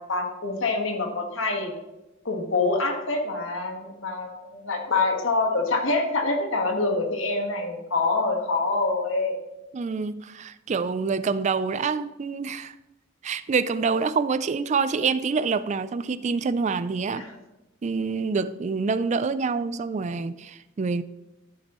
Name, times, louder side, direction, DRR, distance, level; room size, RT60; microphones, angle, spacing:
voice 1, 0.0-1.7 2.2-9.4 17.2-17.3, left 3 dB, 75° left, 1.5 m, -26 dB
voice 2, 9.7-12.8 13.2-17.3 17.8-21.0, right 5 dB, 35° right, 0.3 m, -26 dB
13.0 x 7.3 x 3.0 m
head